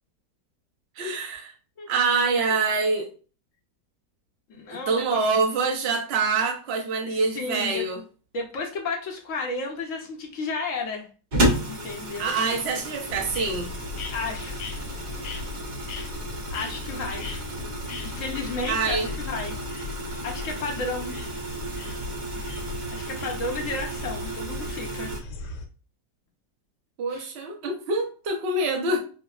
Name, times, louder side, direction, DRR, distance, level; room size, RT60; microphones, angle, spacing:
voice 1, 1.0-1.5 1.9-3.1 4.9-8.0 12.2-13.7 18.7-19.1 27.0-29.0, right 4 dB, 55° right, 0.7 m, -25 dB
voice 2, 4.5-5.2 7.0-7.8 8.3-11.1 11.6-12.3 14.1-14.6 16.5-17.3 18.0-19.5 19.8-21.1 22.9-25.2 27.1-27.3, left 3 dB, 60° left, 0.9 m, -33 dB
sound 1, 11.3-25.2, right 1 dB, 90° right, 0.4 m, -32 dB
sound 2, 13.1-25.7, left 3 dB, 75° left, 1.2 m, -37 dB
4.9 x 2.0 x 2.3 m
omnidirectional pair, 2.0 m